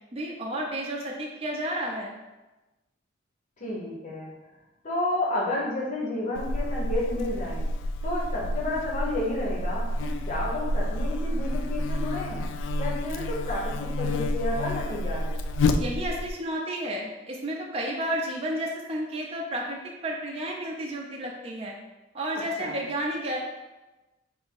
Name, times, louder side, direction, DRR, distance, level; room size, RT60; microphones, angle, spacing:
voice 1, 0.1-2.1 15.8-21.8 22.1-23.4, right 1 dB, 30° right, -1 dB, 0.5 m, -32 dB
voice 2, 3.6-4.3 4.8-7.6 8.0-12.5 12.8-15.4 22.3-22.8, left 1 dB, 40° left, -5 dB, 0.9 m, -31 dB
Buzz, 6.3-16.3, left 1 dB, 70° left, 0.3 m, -29 dB
3.3 x 2.9 x 4.5 m, 1.1 s
head